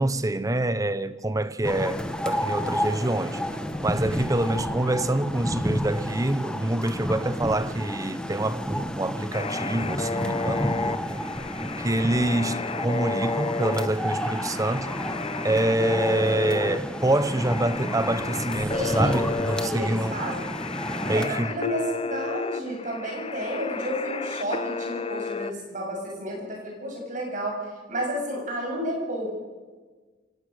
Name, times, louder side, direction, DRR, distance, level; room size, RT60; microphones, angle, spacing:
voice 1, 0.0-3.4 3.8-11.2 11.8-14.9 15.4-20.2 21.0-21.5, right 1 dB, 20° right, 0.8 m, -26 dB
sound 1, 1.6-21.2, equal, 5° left, 1.2 m, -31 dB
sound 2, 9.3-25.5, left 4 dB, 30° left, 0.7 m, -32 dB
voice 2, 18.7-19.3 19.5-20.5 21.0-27.6 27.9-29.3, equal, 45° right, 7.5 m, -31 dB
24.0 x 18.5 x 6.6 m
head